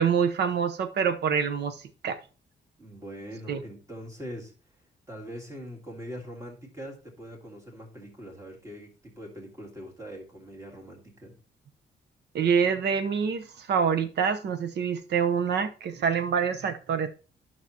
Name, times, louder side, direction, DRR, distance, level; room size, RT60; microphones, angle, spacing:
voice 1, 0.0-2.2 3.5-3.6 12.3-17.1, right 7 dB, 65° right, 0.9 m, -26 dB
voice 2, 2.8-4.5 5.1-11.4, equal, 15° right, 2.0 m, -42 dB
11.5 x 6.0 x 2.9 m
wide cardioid pair, 170°, 19 cm